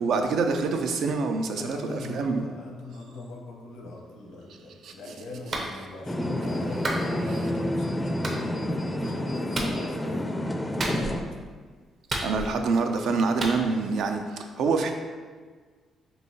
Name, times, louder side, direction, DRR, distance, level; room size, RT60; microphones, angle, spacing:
voice 1, 0.0-2.4 4.8-5.1 7.3-7.4 12.2-14.9, right 4 dB, 75° right, 5 dB, 0.4 m, -26 dB
voice 2, 1.5-10.5 10.7-11.2, left 2 dB, 90° left, 0 dB, 0.7 m, -41 dB
Clapping, 5.5-5.7 6.8-7.1 8.2-8.4 9.5-9.8 10.8-11.3 12.1-12.7 13.4-13.6, right 2 dB, 45° right, 0.7 m, -30 dB
sound 1, 6.1-11.2, left 1 dB, 15° left, 0.4 m, -29 dB
5.2 x 2.7 x 2.7 m, 1.5 s
cardioid pair, 90°, 0 cm